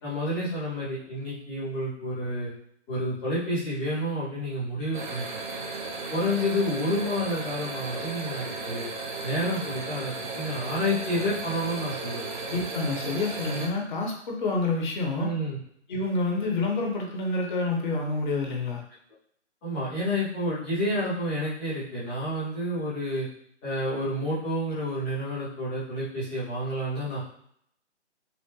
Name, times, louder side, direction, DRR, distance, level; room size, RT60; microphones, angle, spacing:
voice 1, 0.0-2.5 2.9-5.2 6.1-8.9 9.2-12.2 15.1-15.6 19.6-23.3 23.6-27.2, equal, ahead, -37 dB, 0.4 m, -29 dB
sound 1, 4.9-13.7, right 3 dB, 40° right, 0.7 m, -35 dB
voice 2, 12.5-15.3 15.9-18.8, left 3 dB, 40° left, 1 dB, 1.0 m, -28 dB
5.8 x 2.1 x 3.8 m, 0.68 s
figure-of-eight pair, 135°, 36 cm